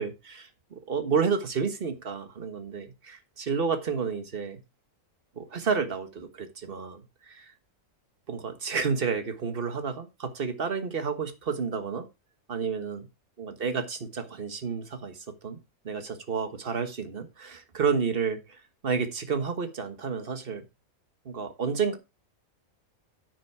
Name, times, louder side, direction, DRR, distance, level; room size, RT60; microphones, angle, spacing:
voice 1, 0.0-4.6 5.4-7.5 8.3-12.0 12.5-13.1 13.4-15.6 15.8-18.6 18.8-20.6 21.2-22.0, right 5 dB, 40° right, 1.5 m, -30 dB
9.2 x 6.4 x 4.6 m
omnidirectional pair, 1.5 m